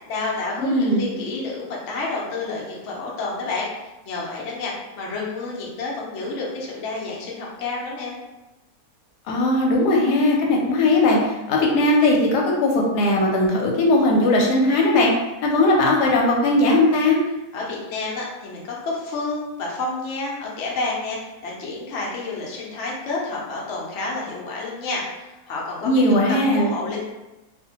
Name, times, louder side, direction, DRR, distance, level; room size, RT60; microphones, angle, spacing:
voice 1, 0.1-3.7 4.1-8.2 17.5-27.0, left 3 dB, 60° left, -4 dB, 0.8 m, -29 dB
voice 2, 0.6-1.0 9.3-15.1 15.4-17.2 25.8-26.7, left 2 dB, 80° left, -1 dB, 1.1 m, -18 dB
2.7 x 2.1 x 2.8 m, 1.0 s
omnidirectional pair, 1.7 m